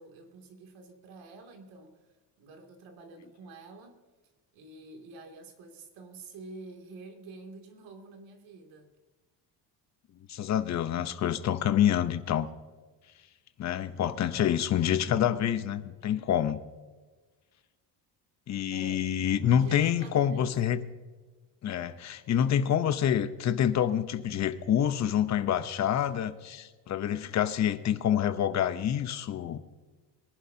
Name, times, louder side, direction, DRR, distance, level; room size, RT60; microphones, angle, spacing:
voice 1, 0.0-2.0 2.4-4.0 4.5-8.9 18.7-19.1 19.4-20.6, right 3 dB, 85° right, 3 dB, 2.8 m, -48 dB
voice 2, 10.3-12.5 13.6-16.6 18.5-20.8 21.6-29.6, left 10 dB, 40° left, 10 dB, 0.8 m, -27 dB
22.5 x 11.0 x 2.8 m, 1.3 s
cardioid pair, 165°, 45 cm